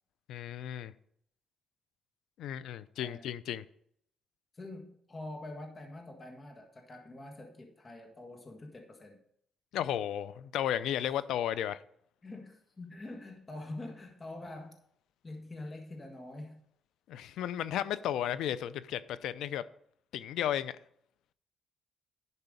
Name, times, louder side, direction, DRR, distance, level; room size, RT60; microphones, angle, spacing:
voice 1, 0.3-0.9 2.4-3.6 9.7-11.8 17.1-19.6 20.1-20.7, left 11 dB, 80° left, 0.5 m, -34 dB
voice 2, 3.0-3.3 4.5-9.2 12.2-14.8 15.2-16.6, left 2 dB, 30° left, 1.7 m, -45 dB
11.0 x 5.6 x 5.2 m
cardioid pair, 90°, 0 cm